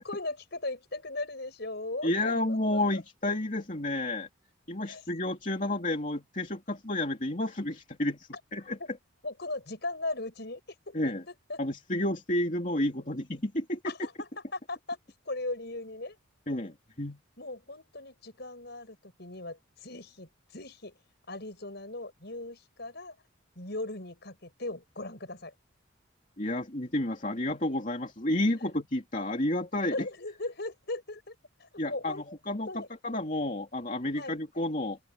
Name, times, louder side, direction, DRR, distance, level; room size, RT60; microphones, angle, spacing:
voice 1, 0.0-2.1 2.5-3.0 4.9-5.0 8.8-8.9 9.2-10.6 10.9-11.6 13.8-15.0 15.2-16.2 17.4-21.0 21.3-23.1 23.5-25.5 29.9-32.2 32.7-32.9 34.1-34.3, left 2 dB, 55° left, 6.8 m, -38 dB
voice 2, 2.0-4.3 4.7-8.8 10.9-11.2 11.6-13.8 16.5-17.2 26.4-30.0 31.8-35.0, left 1 dB, 40° left, 2.8 m, -31 dB
open air
head